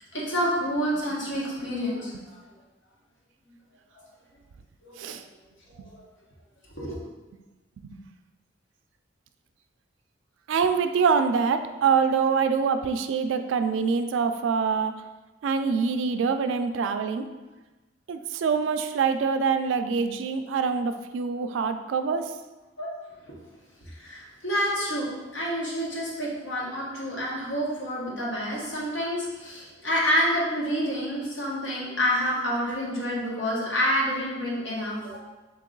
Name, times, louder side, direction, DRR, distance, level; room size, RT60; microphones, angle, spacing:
voice 1, 0.1-2.4 4.8-5.2 5.7-5.9 6.8-7.0 22.8-22.9 24.0-35.2, equal, 70° left, -5 dB, 1.2 m, -28 dB
voice 2, 10.5-14.9 15.4-17.3 18.1-22.3, right 5 dB, 75° right, 8 dB, 0.3 m, -25 dB
3.7 x 2.9 x 3.8 m, 1.2 s
head